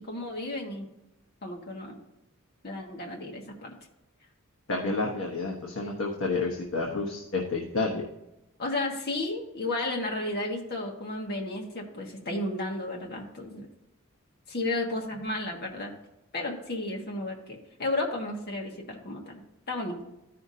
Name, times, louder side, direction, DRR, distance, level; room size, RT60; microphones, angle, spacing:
voice 1, 0.0-0.9 1.4-2.0 2.6-3.7 8.6-13.7 14.5-15.9 16.3-19.3 19.7-20.0, left 2 dB, 45° left, 0 dB, 1.4 m, -33 dB
voice 2, 4.7-8.0, left 3 dB, 65° left, -1 dB, 1.2 m, -30 dB
14.0 x 5.8 x 2.8 m, 0.93 s
head